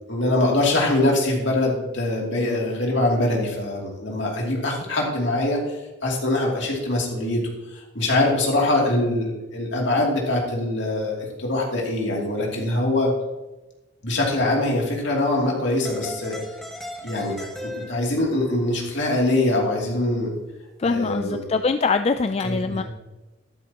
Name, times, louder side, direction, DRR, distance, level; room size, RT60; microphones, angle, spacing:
voice 1, 0.1-5.8 6.0-7.4 7.7-13.1 14.0-16.4 17.0-20.3 20.8-21.4 22.4-22.8, left 2 dB, 60° left, -2 dB, 2.8 m, -23 dB
sound 1, 15.9-18.4, left 1 dB, ahead, 1.4 m, -37 dB
voice 2, 20.8-22.8, left 4 dB, 30° left, 9 dB, 0.3 m, -23 dB
12.5 x 11.5 x 2.9 m, 1.1 s
head